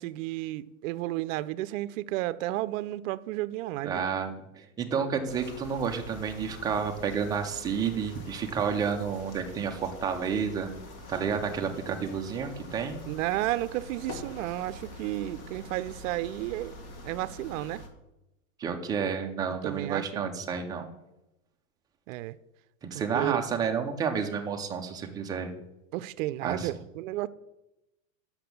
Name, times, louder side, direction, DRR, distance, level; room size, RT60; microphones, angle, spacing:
voice 1, 0.0-4.0 11.9-12.0 13.1-16.8 17.0-17.8 19.6-20.2 22.1-22.4 22.9-23.4 25.9-27.3, right 16 dB, 65° right, 0.5 m, -32 dB
voice 2, 3.8-10.7 11.1-13.0 18.6-20.9 22.8-25.5 26.4-26.7, right 6 dB, 10° right, 0.3 m, -30 dB
sound 1, 5.3-17.9, left 1 dB, 40° left, 1.4 m, -45 dB
5.9 x 5.9 x 6.8 m
supercardioid pair, 130°, 41 cm